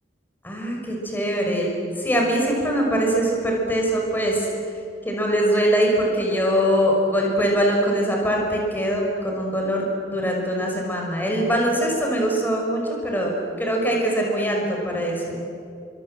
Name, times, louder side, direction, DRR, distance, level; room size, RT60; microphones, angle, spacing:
voice 1, 0.4-4.5 5.0-15.4, equal, 10° left, -1 dB, 5.7 m, -22 dB
28.5 x 25.0 x 7.9 m, 2.7 s
head